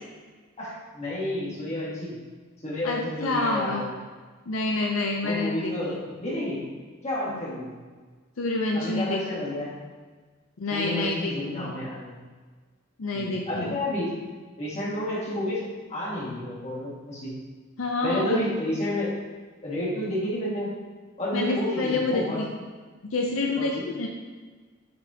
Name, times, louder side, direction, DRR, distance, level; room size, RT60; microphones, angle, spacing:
voice 1, 0.6-2.2 2.6-3.9 5.2-6.6 7.0-7.7 8.7-9.8 10.7-12.2 13.1-14.1 14.6-17.3 18.0-19.2 19.6-20.7 21.2-22.4 23.6-23.8, left 1 dB, 35° left, -7 dB, 1.9 m, -30 dB
voice 2, 2.8-3.9 4.5-6.0 8.4-9.2 10.6-11.8 13.0-13.8 17.8-18.5 21.3-22.5 23.1-24.1, left 2 dB, 80° left, 1 dB, 0.6 m, -28 dB
8.4 x 4.1 x 2.9 m, 1.4 s
head